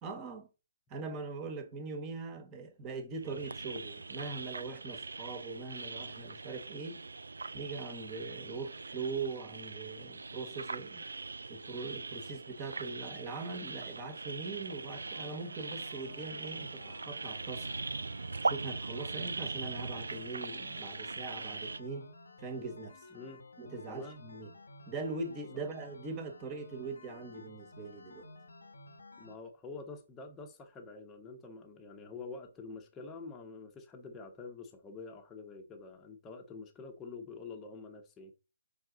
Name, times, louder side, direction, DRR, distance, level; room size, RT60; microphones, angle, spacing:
voice 1, 0.0-0.5 0.9-7.0 7.5-11.0 11.5-17.7 18.4-22.1 22.4-23.0 23.6-24.5 24.9-28.3, right 4 dB, 20° right, 1.5 m, -41 dB
sound 1, 3.2-21.8, right 3 dB, 80° right, 0.4 m, -41 dB
sound 2, 15.0-29.4, left 2 dB, 80° left, 1.1 m, -53 dB
voice 2, 23.1-23.4 23.9-24.2 25.5-25.6 29.2-38.3, left 4 dB, 15° left, 1.1 m, -47 dB
5.8 x 4.6 x 3.9 m
figure-of-eight pair, 145°, 0 cm